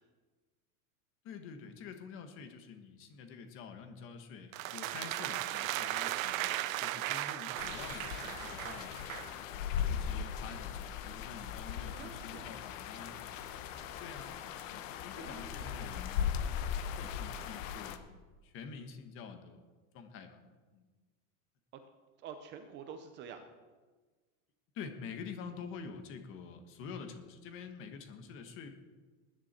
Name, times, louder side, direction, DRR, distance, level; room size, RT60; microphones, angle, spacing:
voice 1, 1.2-9.3 9.9-13.4 14.0-14.3 14.7-16.2 16.8-18.2 18.4-19.6 19.9-20.4 20.7-20.8 24.7-28.7, left 6 dB, 30° left, 7 dB, 1.4 m, -47 dB
sound 1, 4.5-9.4, right 15 dB, 70° right, 0.9 m, -37 dB
sound 2, 7.6-18.0, left 8 dB, 60° left, 1.2 m, -38 dB
voice 2, 12.0-12.5 15.2-16.1 22.2-23.5, right 7 dB, 25° right, 7 dB, 0.7 m, -48 dB
20.0 x 11.0 x 4.4 m, 1.3 s
supercardioid pair, 170°, 43 cm